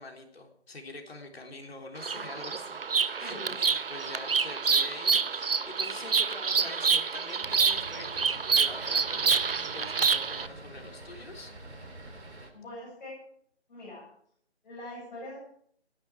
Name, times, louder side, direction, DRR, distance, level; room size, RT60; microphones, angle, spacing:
voice 1, 0.0-11.5, left 2 dB, 65° left, 2 dB, 3.7 m, -45 dB
Bird vocalization bird call bird song, 2.0-10.5, right 5 dB, 55° right, 0.8 m, -27 dB
voice 2, 3.2-3.6 12.5-13.2 13.7-14.0 14.6-15.4, left 1 dB, 40° left, -5 dB, 7.4 m, -42 dB
sound 1, 7.4-12.5, right 2 dB, 80° right, 3.9 m, -46 dB
18.5 x 11.0 x 4.8 m, 0.63 s
figure-of-eight pair, 165°, 33 cm